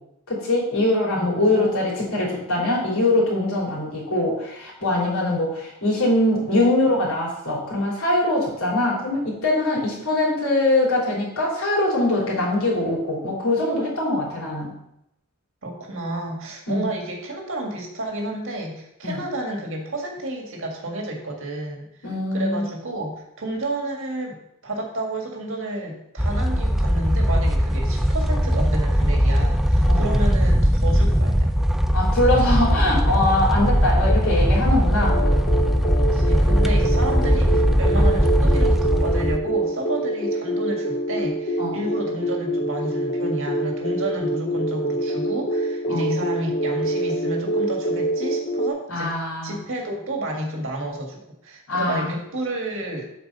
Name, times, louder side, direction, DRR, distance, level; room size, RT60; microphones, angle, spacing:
voice 1, 0.3-14.7 16.7-16.9 19.0-19.2 22.0-22.6 29.9-30.1 31.9-35.3 37.9-38.0 41.6-41.8 45.9-46.1 48.9-49.5 51.7-52.1, left 2 dB, 75° left, -5 dB, 3.4 m, -22 dB
voice 2, 1.1-1.9 15.6-24.4 24.6-31.6 36.0-49.2 49.4-53.1, right 1 dB, 65° right, 1 dB, 1.8 m, -31 dB
sound 1, 26.2-39.4, equal, ahead, 0.4 m, -19 dB
sound 2, 35.0-48.7, right 1 dB, 35° left, 0.7 m, -26 dB
8.2 x 4.5 x 5.4 m, 0.79 s
head